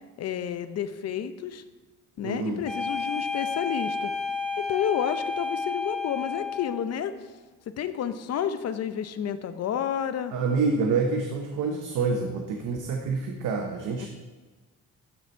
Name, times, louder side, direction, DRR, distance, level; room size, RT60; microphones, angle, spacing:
voice 1, 0.2-1.6 2.2-4.1 4.6-7.1 7.8-10.3 14.0-14.1, left 9 dB, 55° left, 11 dB, 0.6 m, -30 dB
voice 2, 2.2-2.6 10.3-14.1, right 4 dB, 80° right, 2 dB, 0.9 m, -27 dB
sound 1, 2.7-6.9, left 4 dB, ahead, 1.1 m, -31 dB
12.0 x 4.1 x 4.5 m, 1.3 s
cardioid pair, 90°, 30 cm